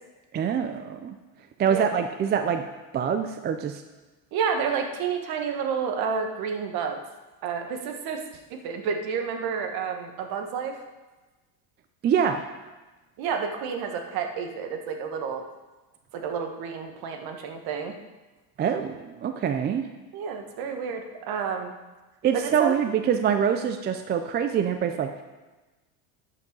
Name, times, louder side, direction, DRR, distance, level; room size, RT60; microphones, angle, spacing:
voice 1, 0.3-1.2 1.6-2.6 2.9-3.8 12.0-12.4 18.6-19.9 22.2-25.2, right 8 dB, 25° right, 7 dB, 0.4 m, -25 dB
voice 2, 4.3-7.0 7.4-8.2 8.5-10.8 13.2-15.4 16.1-17.9 20.1-21.7 22.3-22.8, right 6 dB, 55° right, 4 dB, 1.5 m, -30 dB
11.0 x 5.6 x 5.3 m, 1.2 s
supercardioid pair, 125°, 44 cm